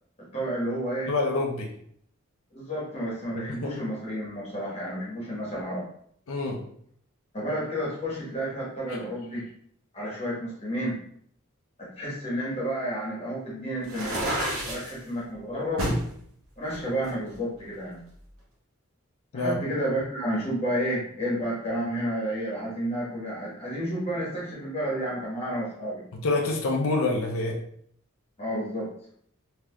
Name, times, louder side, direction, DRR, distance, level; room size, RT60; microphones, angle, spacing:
voice 1, 0.3-1.1 2.5-5.9 7.3-9.5 9.9-11.0 11.8-15.8 16.6-18.0 19.3-26.0 28.4-28.9, equal, 30° left, -5 dB, 1.3 m, -31 dB
voice 2, 1.1-1.7 3.5-3.7 6.3-6.6 19.3-19.6 26.2-27.6, left 3 dB, 75° left, 0 dB, 0.5 m, -26 dB
sound 1, 13.8-14.9 15.8-16.1 16.7-17.8, right 1 dB, 70° right, 0.9 m, -30 dB
3.4 x 2.8 x 2.3 m, 0.64 s
head